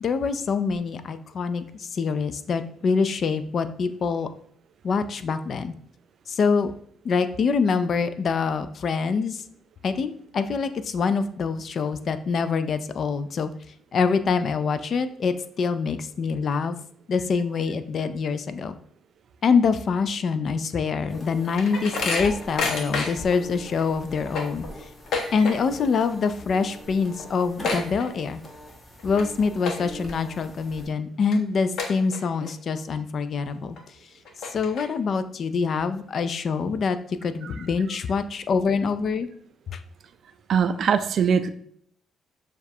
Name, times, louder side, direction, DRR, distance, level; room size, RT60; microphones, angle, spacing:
voice 1, 0.0-4.3 4.8-5.7 6.3-6.7 7.0-9.4 9.8-13.5 13.9-16.8 17.1-18.8 19.4-24.6 25.3-28.4 29.0-33.8 34.5-39.3 39.7-39.8, left 5 dB, 55° left, 11 dB, 0.4 m, -25 dB
sound 1, 20.9-23.4 23.8-23.9 24.2-25.9 26.1-26.5 26.8-26.9 27.1-28.5 29.0-29.2 29.6-30.1 30.6-30.7 31.3-31.4 31.8-32.5 32.9-33.0 33.8-33.9 34.2-35.1, left 3 dB, 70° left, 0.8 m, -30 dB
sound 2, 21.1-30.9, equal, 25° left, 1.1 m, -42 dB
voice 2, 40.5-41.5, right 7 dB, 60° right, 10 dB, 0.3 m, -21 dB
6.6 x 2.4 x 2.7 m, 0.63 s
cardioid pair, 90°, 0 cm